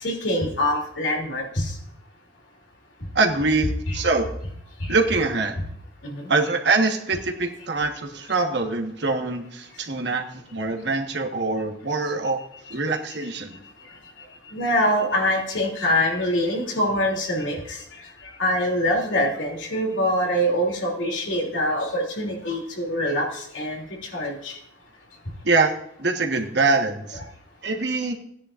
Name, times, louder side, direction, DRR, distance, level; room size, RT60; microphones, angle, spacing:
voice 1, 0.0-1.7 3.9-4.0 6.0-6.2 14.5-17.8 18.4-23.8 24.1-24.5, equal, 80° left, 0 dB, 2.9 m, -24 dB
voice 2, 3.1-4.3 4.9-5.5 6.3-12.4 12.7-13.5 25.4-25.7 26.0-27.2 27.6-28.1, right 3 dB, 65° right, 3 dB, 1.3 m, -24 dB
16.0 x 10.0 x 2.5 m, 0.71 s
head